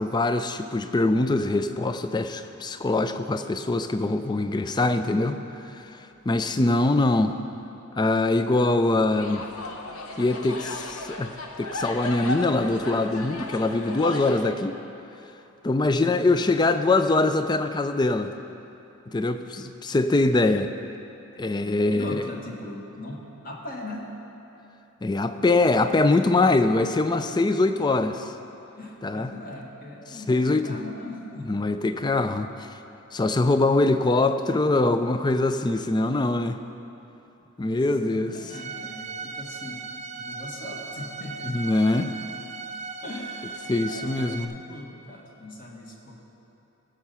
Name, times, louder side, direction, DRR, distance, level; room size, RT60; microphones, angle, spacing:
voice 1, 0.0-5.4 5.7-7.4 8.0-9.5 10.2-14.8 15.6-18.3 19.1-20.7 21.4-22.2 25.0-28.3 29.0-29.3 30.3-30.7 31.5-32.8 33.1-36.6 37.6-38.3 41.4-42.1 43.7-44.5, left 2 dB, 20° left, 9 dB, 0.4 m, -23 dB
sound 1, 9.1-14.4, left 2 dB, 80° left, 1.0 m, -35 dB
voice 2, 16.0-16.4 16.9-17.0 19.3-19.6 21.9-24.1 28.8-31.5 31.9-32.4 37.7-39.8 40.1-41.7 43.0-46.2, left 1 dB, 40° left, -1 dB, 1.6 m, -40 dB
Bowed string instrument, 38.5-44.5, right 4 dB, 30° right, 0.5 m, -37 dB
16.5 x 6.7 x 5.7 m, 2.9 s
head